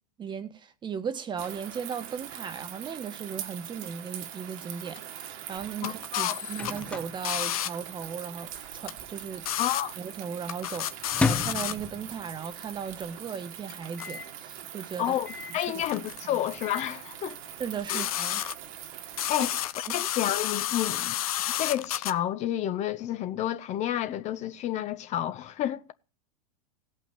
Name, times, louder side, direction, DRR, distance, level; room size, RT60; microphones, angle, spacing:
voice 1, 0.2-9.4 10.0-15.1 15.5-15.6 16.0-16.4 17.6-18.4 19.1-19.5 19.9-20.0, right 6 dB, 25° right, 1.4 m, -37 dB
sound 1, 1.4-19.6, right 11 dB, 55° right, 1.8 m, -42 dB
sound 2, 5.0-5.1 5.8-7.7 8.9-9.0 9.5-9.8 10.1-10.2 10.5-11.7 13.3-13.4 13.7-14.1 15.9-16.2 16.5-16.6 17.9-18.7 19.2-22.1, left 13 dB, 70° left, 1.0 m, -31 dB
voice 2, 5.8-6.4 9.6-9.9 15.0-17.4 17.9-18.0 19.3-19.5 19.9-21.2 21.6-25.9, left 11 dB, 35° left, 1.0 m, -30 dB
Microwave oven, 5.9-8.2 8.4-8.5 8.7-9.3 9.8-12.5 12.9-13.0 13.2-13.3 13.9-14.4 15.2-15.7 16.3-17.0, left 3 dB, 5° left, 1.0 m, -34 dB
17.0 x 5.7 x 9.1 m
hypercardioid pair, 110°, 19 cm